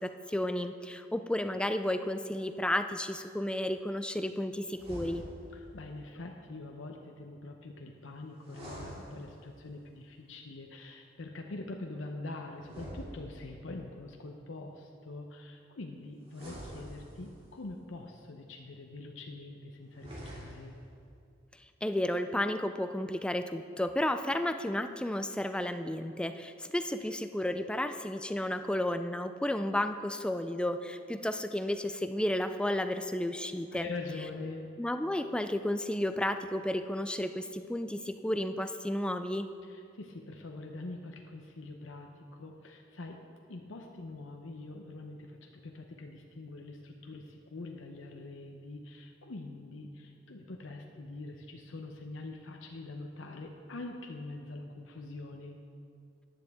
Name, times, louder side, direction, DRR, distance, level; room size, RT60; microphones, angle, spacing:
voice 1, 0.0-5.2 21.8-33.9 34.8-39.5, left 1 dB, 5° left, 9 dB, 0.3 m, -32 dB
sound 1, 4.7-5.7 8.4-9.7 12.6-13.8 16.3-17.5 19.9-20.9, equal, 30° right, 2.8 m, -46 dB
voice 2, 5.5-20.8 33.7-34.7 39.6-43.2 43.5-55.6, left 2 dB, 85° left, 2 dB, 0.8 m, -44 dB
14.0 x 10.0 x 3.6 m, 2.5 s
head